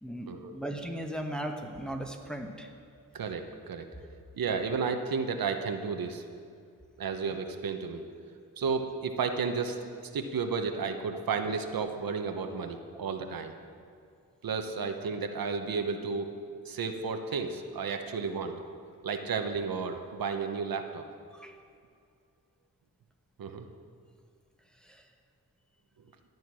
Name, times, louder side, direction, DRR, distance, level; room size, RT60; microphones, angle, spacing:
voice 1, 0.0-2.7 21.3-21.5 24.8-25.0, right 1 dB, ahead, 2 dB, 1.2 m, -37 dB
voice 2, 3.1-3.9 4.4-6.2 7.0-8.0 8.6-13.5 14.4-16.3 16.6-18.5 19.0-21.1 23.4-23.7, right 5 dB, 70° right, 5 dB, 1.1 m, -32 dB
13.0 x 9.2 x 6.2 m, 2.3 s
cardioid pair, 85°, 36 cm